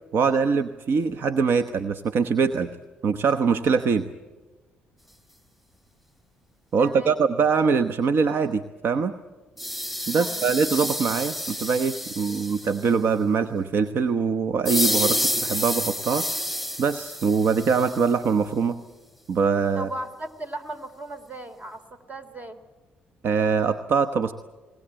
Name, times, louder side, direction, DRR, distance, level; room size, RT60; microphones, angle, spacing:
voice 1, 0.1-2.7 3.0-4.1 6.7-9.1 10.1-16.4 16.8-18.8 19.3-19.9 23.2-24.3, right 5 dB, 60° right, 10 dB, 1.1 m, -23 dB
voice 2, 6.8-7.2 10.1-10.5 19.7-22.6, right 1 dB, 35° right, 10 dB, 3.1 m, -37 dB
sound 1, 9.6-12.9 14.7-18.2, equal, 5° right, 0.8 m, -29 dB
21.0 x 20.0 x 8.9 m, 1.2 s
supercardioid pair, 60°, 4 cm